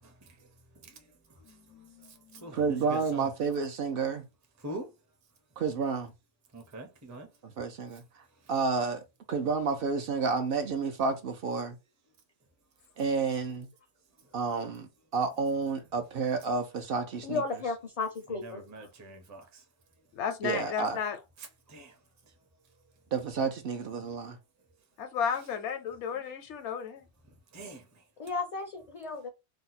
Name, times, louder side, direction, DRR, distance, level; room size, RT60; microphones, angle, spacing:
voice 1, 0.0-0.5 0.7-3.3 4.6-4.9 6.5-7.3 8.4-8.5 18.3-19.6 21.4-22.0 27.5-28.0, right 1 dB, 20° right, 0.5 m, -45 dB
voice 2, 1.5-2.5 20.2-21.2 25.0-27.0, left 7 dB, 75° left, 0.9 m, -34 dB
voice 3, 2.5-4.2 5.6-6.1 7.6-8.0 8.5-9.0 9.3-11.8 13.0-13.7 14.3-17.4 20.4-21.0 23.1-24.4, right 4 dB, 60° right, 0.7 m, -30 dB
voice 4, 17.2-18.6 28.2-29.3, left 3 dB, 45° left, 0.5 m, -34 dB
2.7 x 2.1 x 4.0 m
omnidirectional pair, 1.2 m